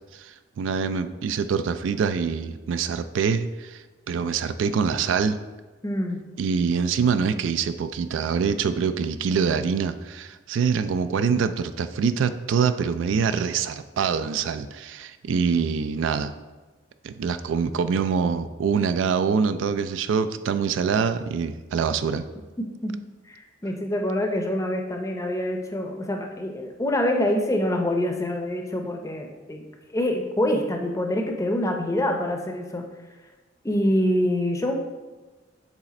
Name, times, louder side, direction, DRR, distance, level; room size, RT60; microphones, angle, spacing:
voice 1, 0.1-5.4 6.4-16.3 17.0-22.2, right 6 dB, 75° right, 11 dB, 0.3 m, -25 dB
voice 2, 5.8-6.3 22.8-23.0 23.3-29.6 29.9-32.9 33.6-34.7, left 1 dB, 15° left, 3 dB, 0.6 m, -25 dB
7.3 x 3.2 x 4.1 m, 1.2 s
head